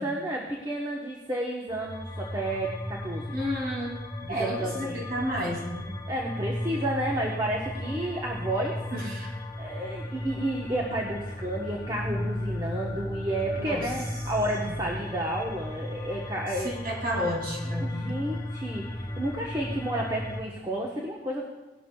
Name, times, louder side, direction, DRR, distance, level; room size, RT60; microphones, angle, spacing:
voice 1, 0.0-3.3 4.2-5.1 6.1-8.8 9.6-16.7 17.1-17.2 17.8-21.4, right 1 dB, 20° right, -2 dB, 1.0 m, -31 dB
sound 1, 1.7-20.4, left 1 dB, 20° left, 0.7 m, -35 dB
voice 2, 3.3-4.0 4.3-5.9 8.9-9.3 13.6-13.9 14.6-14.8 16.6-18.1, equal, 55° right, -4 dB, 2.8 m, -32 dB
18.0 x 12.0 x 2.3 m, 1.2 s
head